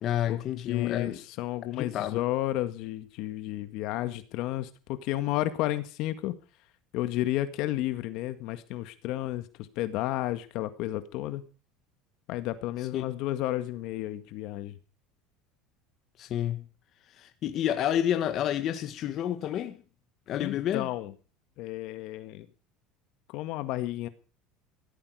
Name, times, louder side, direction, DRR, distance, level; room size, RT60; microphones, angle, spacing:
voice 1, 0.0-1.2 1.7-2.2 12.9-13.0 16.2-16.6 17.2-19.8 20.3-20.9, left 11 dB, 40° left, 1.7 m, -29 dB
voice 2, 0.7-6.3 6.9-9.5 9.8-11.4 12.3-14.7 20.4-21.1 21.6-22.5 23.3-24.1, left 15 dB, 60° left, 1.9 m, -32 dB
16.5 x 14.0 x 4.9 m
cardioid pair, 145°, 0 cm